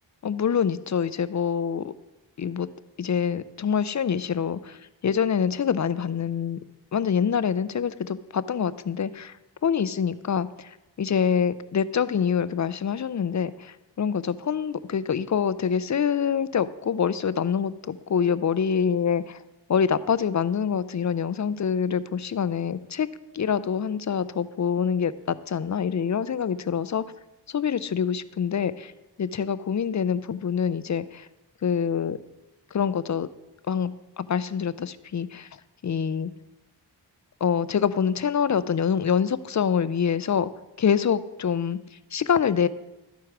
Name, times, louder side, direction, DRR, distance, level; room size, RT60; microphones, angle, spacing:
voice 1, 0.2-1.9 2.4-2.7 3.0-6.6 6.9-9.3 9.6-19.4 19.7-23.1 23.3-27.0 27.5-28.9 29.2-31.3 31.6-32.2 32.7-33.3 33.7-35.5 35.8-36.3 37.4-40.5 40.8-41.8 42.1-42.7, left 7 dB, 40° left, 16 dB, 0.5 m, -25 dB
12.5 x 4.6 x 5.9 m, 0.99 s
cardioid pair, 55°, 44 cm